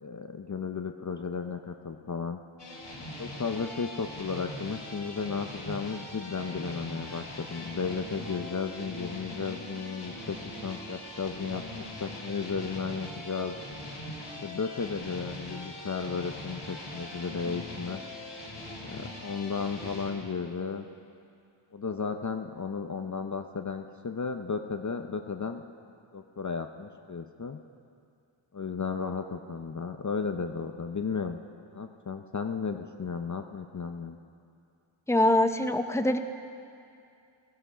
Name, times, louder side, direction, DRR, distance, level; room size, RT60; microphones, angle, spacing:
voice 1, 0.0-2.4 3.2-13.5 14.4-18.0 18.8-20.9 21.7-25.6 26.1-27.6 28.5-31.4 31.7-34.2, left 5 dB, 35° left, 6 dB, 0.7 m, -34 dB
sound 1, 2.6-20.1, left 1 dB, 80° left, 3.3 m, -41 dB
voice 2, 35.1-36.2, left 1 dB, 5° left, 7 dB, 0.8 m, -23 dB
17.5 x 13.5 x 5.6 m, 2.5 s
wide cardioid pair, 55°, 50 cm